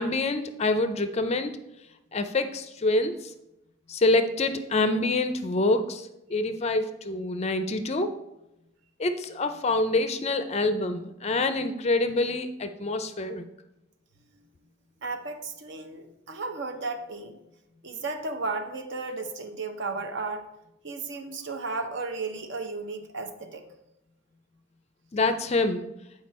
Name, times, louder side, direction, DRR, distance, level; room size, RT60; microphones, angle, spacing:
voice 1, 0.0-1.5 2.1-3.3 3.9-8.2 9.0-13.4 25.1-25.9, left 2 dB, 30° left, 9 dB, 0.4 m, -26 dB
voice 2, 15.0-17.4 17.8-20.5 20.8-23.6, right 3 dB, 60° right, 6 dB, 0.7 m, -34 dB
7.8 x 4.8 x 4.2 m, 0.90 s
head